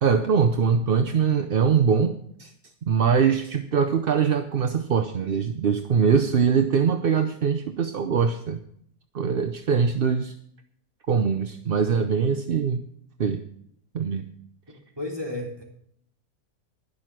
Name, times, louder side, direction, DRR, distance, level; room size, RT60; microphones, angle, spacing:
voice 1, 0.0-2.1 2.4-2.5 2.8-8.6 9.1-10.3 11.1-12.9 13.2-13.4 13.9-14.3, right 6 dB, 50° right, 8 dB, 0.7 m, -22 dB
voice 2, 15.0-15.6, left 2 dB, 15° right, -1 dB, 3.3 m, -32 dB
11.0 x 11.0 x 6.0 m, 0.69 s
omnidirectional pair, 1.6 m